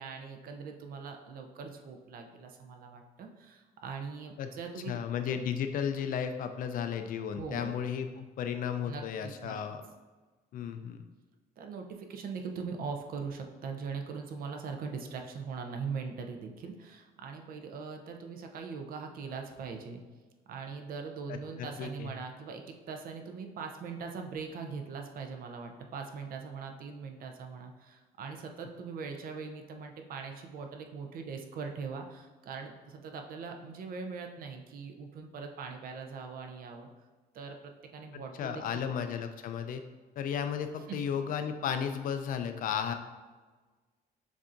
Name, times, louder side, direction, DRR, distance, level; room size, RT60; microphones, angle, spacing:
voice 1, 0.0-5.0 7.4-7.7 8.9-9.6 11.6-20.0 20.5-36.9 37.3-38.8 40.9-41.0, right 5 dB, 60° right, 4 dB, 0.6 m, -41 dB
voice 2, 4.9-9.8 10.5-11.0 21.3-22.1 38.1-39.8 40.2-42.9, left 8 dB, 55° left, 8 dB, 0.4 m, -34 dB
7.0 x 2.6 x 2.5 m, 1.3 s
cardioid pair, 110°, 17 cm